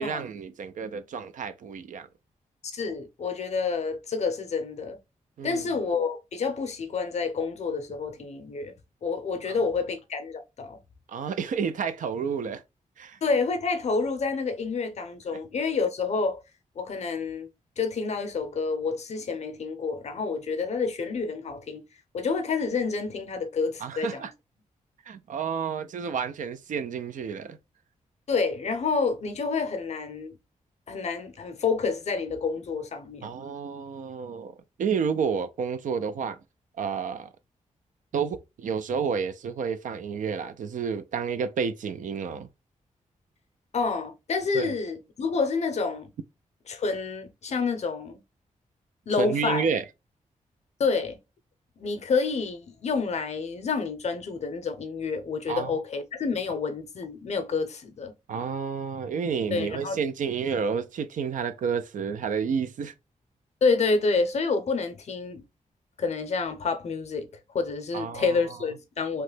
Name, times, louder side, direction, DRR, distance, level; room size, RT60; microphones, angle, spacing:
voice 1, 0.0-2.1 5.4-5.6 9.5-9.6 11.1-12.6 13.0-13.2 15.3-15.4 23.8-24.3 25.1-27.6 33.2-36.4 36.8-37.3 38.1-42.5 44.5-44.7 49.2-49.8 55.5-55.8 58.3-62.9 67.9-68.4, right 6 dB, 70° right, 0.4 m, -30 dB
voice 2, 2.7-5.0 5.4-8.7 9.0-10.8 13.2-16.4 16.8-17.5 17.8-21.8 22.1-24.3 28.3-30.4 30.9-33.4 43.7-46.1 46.7-48.2 49.1-49.6 50.8-51.2 51.8-58.1 59.5-60.0 63.6-65.4 66.0-67.3 67.5-69.2, left 4 dB, 55° left, 0.6 m, -28 dB
2.9 x 2.1 x 3.2 m
wide cardioid pair, 110°, 14 cm